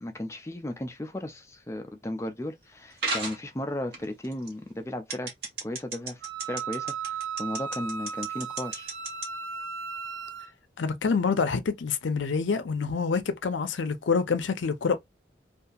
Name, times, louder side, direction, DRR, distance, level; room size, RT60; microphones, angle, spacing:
voice 1, 0.0-5.3 5.6-6.2 6.5-8.9, left 1 dB, 15° left, 0.4 m, -35 dB
sound 1, 3.0-3.4 3.9-4.5 5.1-9.3, right 3 dB, 60° right, 1.2 m, -32 dB
Wind instrument woodwind instrument, 6.2-10.5, right 6 dB, 80° right, 0.4 m, -36 dB
voice 2, 10.8-15.0, left 5 dB, 80° left, 0.5 m, -27 dB
2.7 x 2.4 x 2.3 m
head